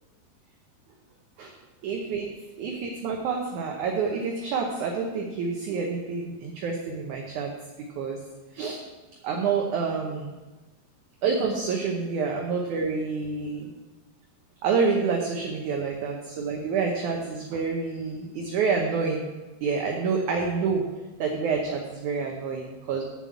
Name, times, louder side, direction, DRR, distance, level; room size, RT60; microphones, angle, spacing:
voice 1, 1.8-2.3 2.6-7.5 8.0-8.2 8.5-8.8 9.2-10.3 11.2-13.7 14.6-19.3 19.6-20.8 21.2-23.0, right 5 dB, 70° right, 1 dB, 1.9 m, -28 dB
8.0 x 7.4 x 8.5 m, 1.2 s
omnidirectional pair, 4.7 m